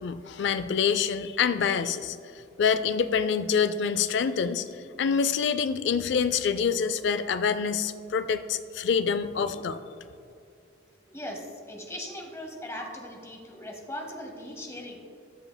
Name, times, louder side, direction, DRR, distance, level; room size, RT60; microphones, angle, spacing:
voice 1, 0.0-2.2 2.6-4.7 5.0-9.8, left 6 dB, 60° left, 12 dB, 0.3 m, -26 dB
voice 2, 11.1-15.0, left 1 dB, 15° left, 2 dB, 0.8 m, -39 dB
15.0 x 5.5 x 2.2 m, 2.5 s
head